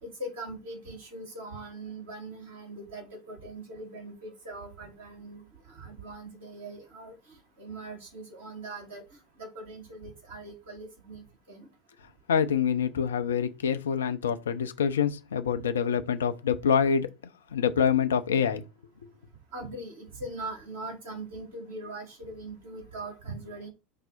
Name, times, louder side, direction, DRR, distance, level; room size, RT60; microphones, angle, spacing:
voice 1, 0.0-9.0 9.4-11.7 19.5-23.7, right 2 dB, 70° right, 2.0 m, -41 dB
voice 2, 12.3-17.1 17.5-18.6, left 7 dB, 75° left, 0.5 m, -26 dB
5.5 x 2.0 x 3.9 m
figure-of-eight pair, 80°, 0 cm